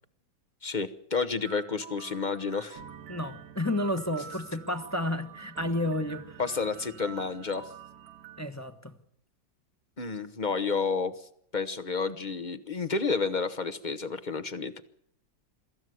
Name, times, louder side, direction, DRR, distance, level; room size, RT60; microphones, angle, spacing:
voice 1, 0.6-2.8 6.4-7.7 10.0-11.3 11.5-14.8, left 4 dB, 35° left, 0.7 m, -30 dB
sound 1, 1.4-8.4, right 7 dB, 55° right, 1.3 m, -47 dB
voice 2, 3.1-6.4 8.4-8.9, left 1 dB, 10° left, 0.9 m, -31 dB
23.5 x 14.0 x 9.4 m
omnidirectional pair, 2.2 m